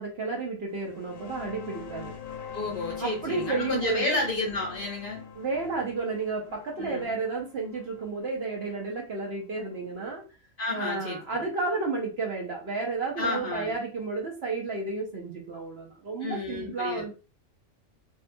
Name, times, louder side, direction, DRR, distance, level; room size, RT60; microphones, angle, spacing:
voice 1, 0.0-2.1 3.0-4.3 5.4-10.2 10.7-17.1, right 3 dB, 55° right, 0 dB, 0.8 m, -32 dB
sound 1, 0.8-10.1, left 7 dB, 90° left, 1.0 m, -43 dB
voice 2, 2.5-5.2 6.8-7.1 10.6-11.4 13.2-13.7 16.2-17.1, left 2 dB, 50° left, -2 dB, 0.8 m, -31 dB
2.7 x 2.3 x 2.5 m, 0.32 s
omnidirectional pair, 1.4 m